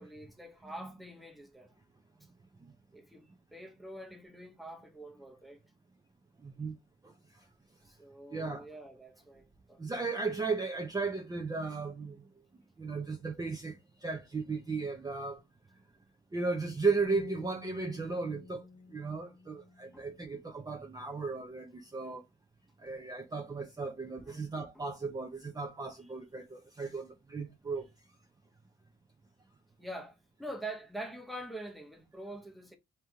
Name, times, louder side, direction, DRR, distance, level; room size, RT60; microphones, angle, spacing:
voice 1, 0.0-1.7 2.9-5.6 7.8-9.8 19.9-20.1 24.2-24.4 24.7-24.8 26.0-26.1 29.8-32.8, right 1 dB, ahead, 1.1 m, -45 dB
voice 2, 6.4-6.8 7.0-7.5 8.3-8.7 9.8-12.2 12.8-15.4 16.3-18.7 18.9-22.2 22.8-27.8, right 4 dB, 20° right, 0.7 m, -35 dB
sound 1, 17.0-20.2, left 4 dB, 60° left, 1.0 m, -49 dB
3.4 x 2.9 x 3.5 m
cardioid pair, 90°, 20 cm